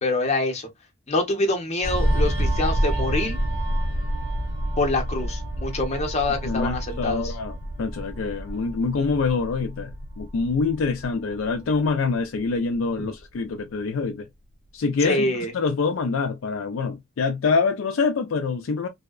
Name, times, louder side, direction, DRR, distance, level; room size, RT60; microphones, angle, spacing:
voice 1, 0.0-0.7 1.1-3.4 4.8-7.3 15.0-15.5, left 2 dB, 30° left, 0.7 m, -25 dB
sound 1, 1.8-10.9 11.2-11.5, equal, 25° right, 0.9 m, -29 dB
sound 2, 2.4-13.7 14.0-14.1, right 1 dB, 55° right, 0.3 m, -33 dB
voice 2, 6.4-14.3 14.7-15.3 15.5-18.9, left 4 dB, 65° left, 0.4 m, -25 dB
2.6 x 2.1 x 2.3 m
head